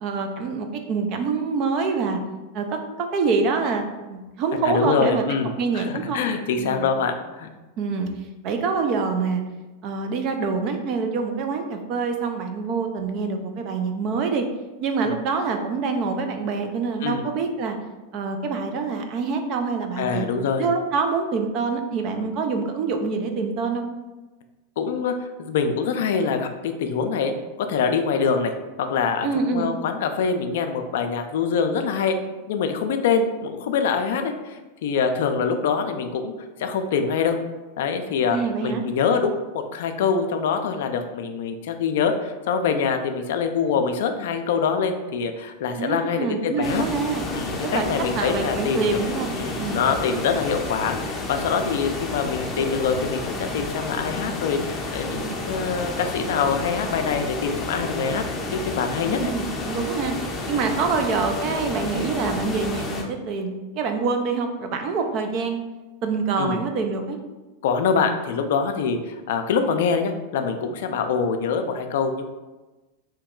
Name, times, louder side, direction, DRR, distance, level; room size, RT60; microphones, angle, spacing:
voice 1, 0.0-2.2 2.5-5.2 5.6-6.2 6.6-6.9 7.8-8.1 8.4-9.4 9.8-14.5 14.8-17.8 18.1-20.3 20.6-23.9 29.2-29.7 38.3-38.8 45.8-47.2 47.7-49.8 55.1-55.4 59.1-60.1 60.5-65.6 66.0-67.2, right 4 dB, 50° right, 5 dB, 0.4 m, -26 dB
voice 2, 4.6-7.5 15.0-15.1 17.0-17.2 20.0-20.7 24.8-27.3 27.6-28.5 28.8-32.2 32.5-36.3 36.6-37.4 37.8-38.4 38.6-46.8 47.3-49.0 49.4-58.2 58.5-59.2 66.4-66.6 67.6-72.3, left 6 dB, 70° left, 7 dB, 0.3 m, -24 dB
sound 1, 46.6-63.0, left 2 dB, 25° left, 0.6 m, -31 dB
2.8 x 2.2 x 3.6 m, 1.1 s
hypercardioid pair, 110°, 0 cm